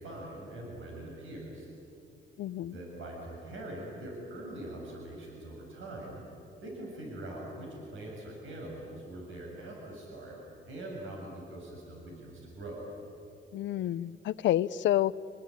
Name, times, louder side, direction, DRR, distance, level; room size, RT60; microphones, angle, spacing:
voice 1, 0.0-1.7 2.6-6.2 6.6-10.4 10.7-12.8, right 1 dB, 80° right, -2 dB, 7.4 m, -43 dB
voice 2, 2.4-2.8 13.5-15.2, left 13 dB, 70° left, 16 dB, 0.6 m, -29 dB
29.5 x 20.5 x 9.9 m, 2.7 s
cardioid pair, 90°, 20 cm